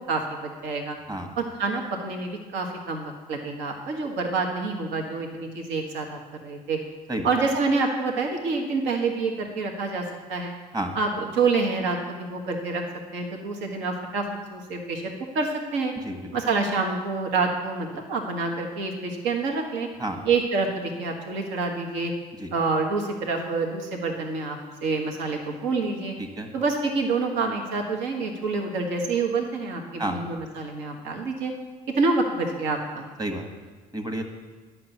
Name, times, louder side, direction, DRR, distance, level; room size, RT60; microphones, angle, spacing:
voice 1, 0.0-1.0 1.4-6.8 7.2-10.0 10.3-10.5 10.9-12.8 13.1-15.9 16.3-19.9 20.2-22.1 22.5-26.1 26.5-31.5 31.9-33.1, right 3 dB, 65° right, 2 dB, 1.5 m, -27 dB
voice 2, 26.2-26.5 30.0-30.4 33.2-34.2, right 1 dB, 20° right, 5 dB, 1.7 m, -31 dB
11.5 x 6.0 x 7.0 m, 1.4 s
figure-of-eight pair, 50°, 21 cm